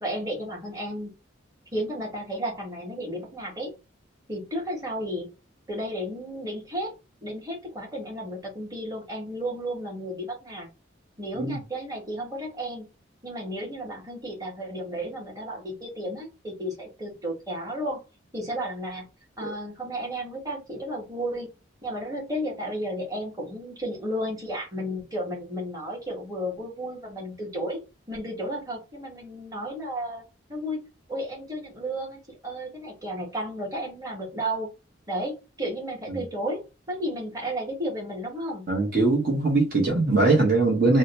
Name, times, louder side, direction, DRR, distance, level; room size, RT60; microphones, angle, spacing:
voice 1, 0.0-1.1 1.7-3.7 4.3-5.3 5.7-6.9 7.2-10.7 11.2-12.8 13.2-18.0 18.3-19.0 19.4-21.5 21.8-27.8 28.1-30.2 30.5-34.7 35.1-38.6, equal, 20° right, 1.2 m, -33 dB
voice 2, 38.7-41.0, right 3 dB, 45° right, 0.9 m, -21 dB
2.8 x 2.1 x 4.0 m
head